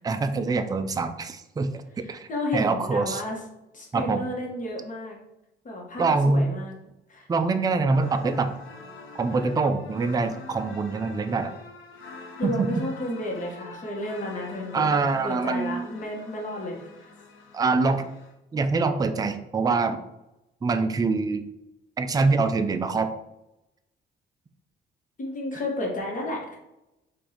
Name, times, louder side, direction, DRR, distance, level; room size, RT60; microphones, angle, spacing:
voice 1, 0.0-1.7 2.1-3.2 3.9-4.3 6.0-6.5 7.3-8.5 9.1-11.5 12.4-12.7 14.7-15.9 17.5-18.1 18.5-20.0 20.6-21.5 22.0-23.1, right 3 dB, 20° right, 8 dB, 0.3 m, -24 dB
voice 2, 2.0-3.4 3.7-5.2 5.6-6.7 7.1-7.3 12.4-16.8 25.2-26.6, left 1 dB, 40° left, -1 dB, 1.2 m, -32 dB
sound 1, 7.9-18.3, left 4 dB, 90° left, 0.6 m, -45 dB
4.6 x 2.6 x 2.8 m, 0.91 s
cardioid pair, 90°, 20 cm